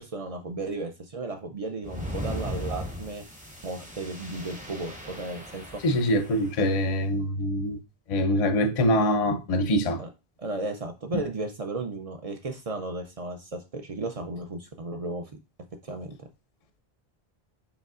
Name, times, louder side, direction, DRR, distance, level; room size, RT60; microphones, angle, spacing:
voice 1, 0.0-3.3 3.6-5.8 10.0-10.1 10.4-15.3 15.9-16.3, right 2 dB, 45° right, 0.5 m, -34 dB
sound 1, 1.8-6.7, equal, 10° right, 0.7 m, -38 dB
voice 2, 5.8-7.8 8.1-10.0, equal, 45° left, 0.5 m, -24 dB
5.1 x 3.1 x 2.4 m
omnidirectional pair, 1.0 m